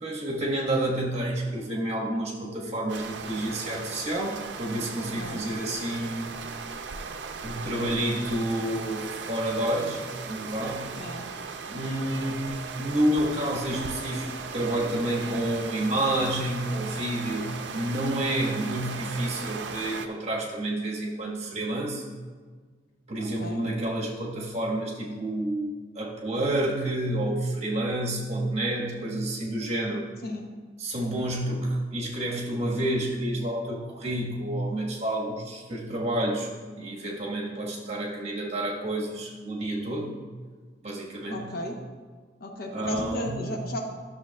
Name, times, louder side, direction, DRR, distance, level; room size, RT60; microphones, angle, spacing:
voice 1, 0.0-6.2 7.4-10.0 10.3-10.9 11.7-22.0 23.1-30.1 30.8-36.5 36.8-40.2 40.8-41.6 42.7-43.5, right 1 dB, 40° right, -3 dB, 1.5 m, -29 dB
sound 1, 2.9-20.1, right 5 dB, 75° right, 0.5 m, -37 dB
voice 2, 23.2-23.6 30.2-30.4 41.3-41.8 42.4-43.8, left 1 dB, 60° left, 2 dB, 0.9 m, -34 dB
11.5 x 6.8 x 2.3 m, 1.5 s
head